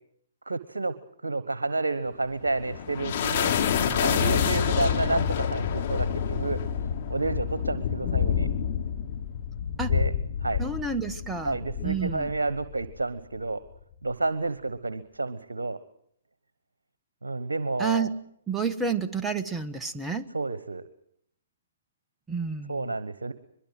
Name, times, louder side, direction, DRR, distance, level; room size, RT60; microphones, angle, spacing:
voice 1, 0.5-0.9 1.2-3.5 4.0-6.6 7.1-8.5 9.9-10.1 10.4-10.6 11.4-13.6 14.0-15.8 17.2-18.1 20.3-20.8 22.7-23.3, right 3 dB, 75° right, 14 dB, 1.2 m, -30 dB
sound 1, 2.2-13.0, left 8 dB, 45° left, 3.3 m, -28 dB
voice 2, 10.6-11.6 11.8-12.3 17.8-18.1 18.5-20.3 22.3-22.9, right 5 dB, 10° right, 6 dB, 1.2 m, -30 dB
23.0 x 22.5 x 7.8 m, 0.68 s
figure-of-eight pair, 125°, 0 cm